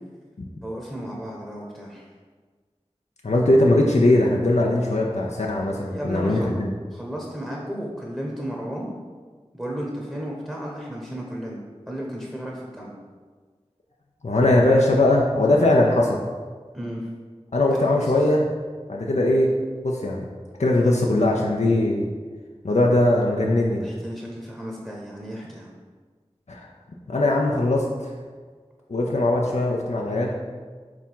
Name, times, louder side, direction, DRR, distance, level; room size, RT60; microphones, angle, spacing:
voice 1, 0.6-2.0 5.9-6.6 6.9-8.9 9.5-11.6 11.9-12.9 16.7-17.1 17.7-18.1 20.8-20.9 23.8-25.7, equal, 10° right, -3 dB, 1.0 m, -33 dB
voice 2, 3.2-6.7 14.2-16.2 17.5-18.5 18.9-19.5 19.8-20.3 20.6-22.1 22.6-23.8 26.5-26.7 27.1-28.1 28.9-30.3, left 1 dB, 85° left, -2 dB, 0.6 m, -20 dB
4.9 x 3.5 x 5.6 m, 1.5 s
wide cardioid pair, 40°, 11 cm